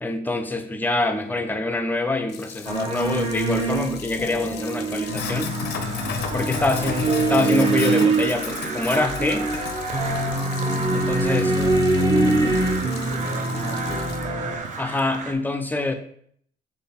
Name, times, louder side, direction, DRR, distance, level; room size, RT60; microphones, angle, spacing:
voice 1, 0.0-5.5 6.3-9.5 10.9-11.5 14.8-15.9, left 2 dB, 10° left, 6 dB, 0.5 m, -25 dB
Sink (filling or washing), 2.3-14.2, left 8 dB, 85° left, 0.6 m, -35 dB
sound 1, 2.6-14.6, right 2 dB, 25° right, 0.9 m, -24 dB
Crow, 5.3-15.3, right 5 dB, 45° right, 0.6 m, -35 dB
voice 2, 6.0-6.7 10.9-14.1, equal, 65° right, -2 dB, 1.8 m, -37 dB
3.9 x 3.2 x 4.2 m, 0.64 s
cardioid pair, 110°, 17 cm